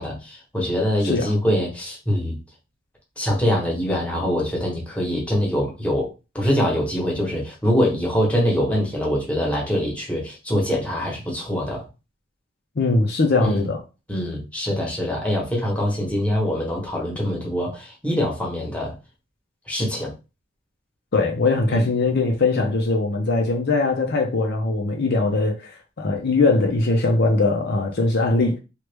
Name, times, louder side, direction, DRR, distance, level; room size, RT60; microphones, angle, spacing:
voice 1, 0.0-2.4 3.2-11.8 13.4-13.7 14.1-18.9 19.7-20.1 21.7-21.9, equal, 5° left, 1.1 m, -24 dB
voice 2, 12.8-13.8 21.1-28.6, left 3 dB, 55° left, 0.6 m, -21 dB
3.0 x 2.5 x 3.3 m
head